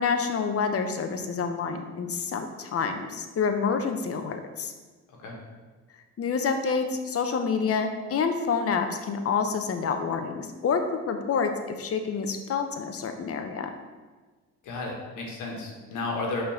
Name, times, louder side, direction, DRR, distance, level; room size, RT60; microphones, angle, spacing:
voice 1, 0.0-4.7 6.2-10.8 11.1-13.7, left 5 dB, 50° left, 6 dB, 0.8 m, -28 dB
voice 2, 14.6-16.4, left 3 dB, 85° left, -1 dB, 1.5 m, -33 dB
5.4 x 4.1 x 5.7 m, 1.3 s
cardioid pair, 90°, 30 cm